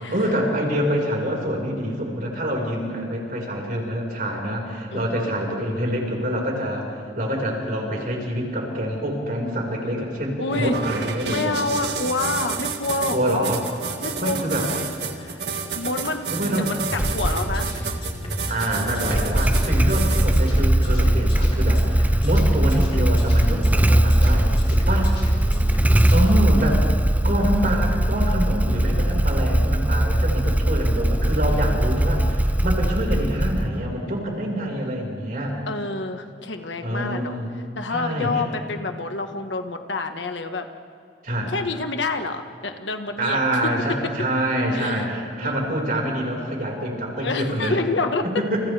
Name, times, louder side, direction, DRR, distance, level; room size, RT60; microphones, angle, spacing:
voice 1, 0.1-6.8 7.1-11.6 13.1-13.6 14.2-14.7 16.3-16.7 18.4-25.1 26.1-26.8 27.2-35.6 36.8-37.5 37.9-38.4 41.2-41.5 43.2-47.8 48.3-48.6, equal, 50° right, 0 dB, 5.1 m, -26 dB
voice 2, 4.9-5.3 10.4-10.8 11.2-13.5 14.0-14.7 15.1-17.8 25.3-26.2 28.8-29.3 31.5-31.9 35.7-37.4 37.7-40.7 41.5-43.7 44.7-45.0 45.4-45.8 47.2-48.2, left 3 dB, 90° left, 6 dB, 1.5 m, -28 dB
sound 1, 10.5-20.5, right 5 dB, 65° right, 1.9 m, -30 dB
sound 2, 16.8-26.2, equal, 35° left, 4.3 m, -31 dB
Motorcycle / Engine starting, 17.0-17.6 19.0-33.9, right 1 dB, 10° right, 0.4 m, -20 dB
30.0 x 29.0 x 3.5 m, 2.6 s
head